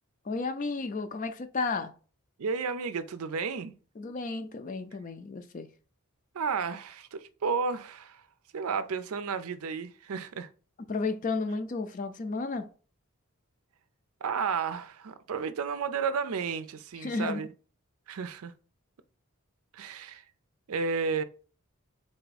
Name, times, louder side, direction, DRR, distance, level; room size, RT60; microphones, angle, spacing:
voice 1, 0.3-1.9 4.0-5.7 10.9-12.7 17.0-17.4, left 3 dB, 35° left, 0.4 m, -32 dB
voice 2, 2.4-3.7 6.3-8.2 8.5-10.5 14.2-17.5 18.1-18.5 19.7-20.2 20.7-21.2, right 5 dB, 80° right, 0.5 m, -32 dB
3.7 x 3.4 x 4.0 m
head